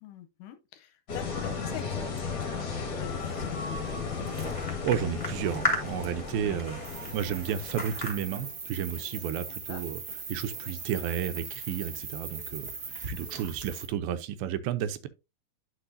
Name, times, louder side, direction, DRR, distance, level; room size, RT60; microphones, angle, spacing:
voice 1, 0.0-4.3 6.4-6.6 9.5-9.8, left 11 dB, 75° left, 2.1 m, -45 dB
sound 1, 1.1-8.6, left 5 dB, 50° left, 1.3 m, -35 dB
sound 2, 3.1-8.1, left 1 dB, 25° left, 0.7 m, -36 dB
voice 2, 4.8-6.8 7.1-10.0 10.3-12.7 13.1-15.1, right 9 dB, 85° right, 2.4 m, -32 dB
sound 3, 6.8-13.9, right 4 dB, 55° right, 1.0 m, -40 dB
10.0 x 5.3 x 2.6 m
omnidirectional pair, 4.3 m